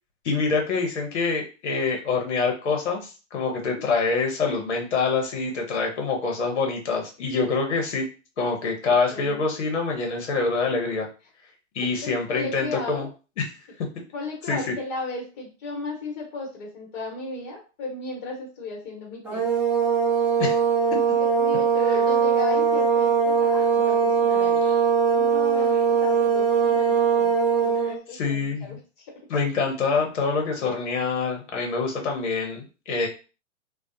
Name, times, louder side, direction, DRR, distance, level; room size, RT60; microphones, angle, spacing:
voice 1, 0.2-8.1 8.4-11.1 11.7-13.1 13.4-13.5 14.5-14.7 20.4-20.6 28.1-28.8 29.3-33.1, left 4 dB, 65° left, 2 dB, 0.9 m, -25 dB
voice 2, 8.9-9.4 11.8-13.1 14.1-19.4 21.2-24.6 25.1-27.3 27.6-29.2, left 2 dB, 35° left, -2 dB, 1.2 m, -35 dB
sound 1, 19.2-28.0, right 6 dB, 5° right, 0.7 m, -21 dB
2.3 x 2.1 x 2.6 m, 0.33 s
figure-of-eight pair, 105°, 37 cm